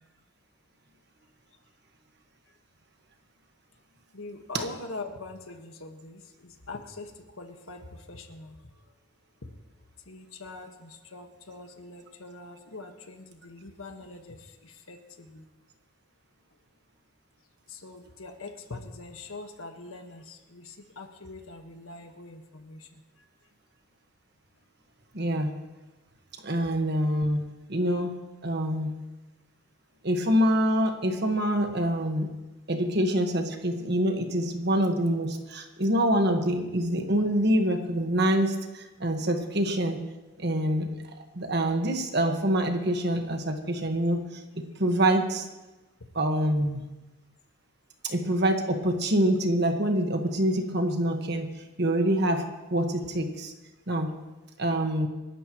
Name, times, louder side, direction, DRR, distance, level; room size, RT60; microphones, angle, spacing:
voice 1, 4.1-6.1 6.7-7.1 7.4-7.8 8.1-8.5 10.1-10.7 11.1-14.4 14.9-15.0 15.3-15.4 17.8-20.2 20.5-20.6 21.0-22.8, left 3 dB, 80° left, 5 dB, 1.5 m, -42 dB
voice 2, 25.1-25.5 26.4-27.4 27.7-28.1 28.4-28.9 30.0-32.3 32.7-40.0 40.4-40.9 41.3-45.5 46.1-46.8 48.0-51.5 51.8-53.5 53.9-54.1 54.6-55.1, right 1 dB, 50° right, 4 dB, 1.5 m, -26 dB
28.5 x 12.0 x 3.1 m, 1.1 s
head